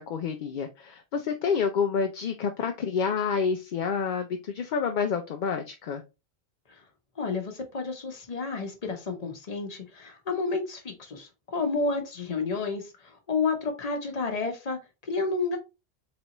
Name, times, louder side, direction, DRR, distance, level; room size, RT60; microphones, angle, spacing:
voice 1, 0.0-6.0, left 6 dB, 60° left, 0.6 m, -28 dB
voice 2, 7.2-14.8 15.1-15.6, left 4 dB, 40° left, 0.9 m, -30 dB
4.0 x 3.3 x 2.9 m
omnidirectional pair, 1.1 m